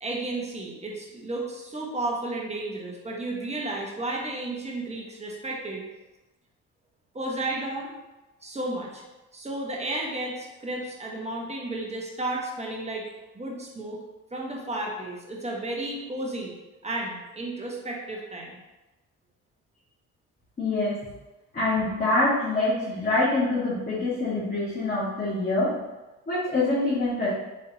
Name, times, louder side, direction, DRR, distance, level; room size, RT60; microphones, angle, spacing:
voice 1, 0.0-5.8 7.1-7.9 8.4-9.0 9.3-13.0 13.3-14.0 14.3-16.5 16.8-18.6, right 2 dB, 20° right, -2 dB, 1.0 m, -33 dB
voice 2, 20.6-21.0 21.5-25.8 26.3-27.3, left 2 dB, 30° left, -10 dB, 1.4 m, -25 dB
4.1 x 3.5 x 2.7 m, 1.1 s
cardioid pair, 90°, 30 cm